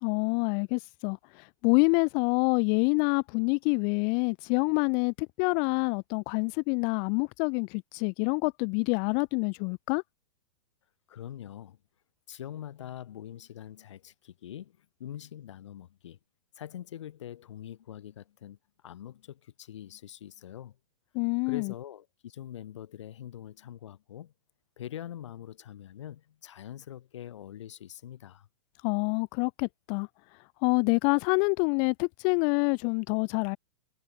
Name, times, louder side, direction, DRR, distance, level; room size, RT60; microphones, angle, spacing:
voice 1, 0.0-10.0 21.1-21.7 28.8-30.1 30.6-33.6, left 40 dB or more, 35° left, 0.7 m, -27 dB
voice 2, 11.1-11.8 12.3-16.2 16.6-18.6 18.8-20.8 21.5-24.3 24.8-28.5, left 11 dB, 75° left, 3.5 m, -43 dB
supercardioid pair, 155°, 15 cm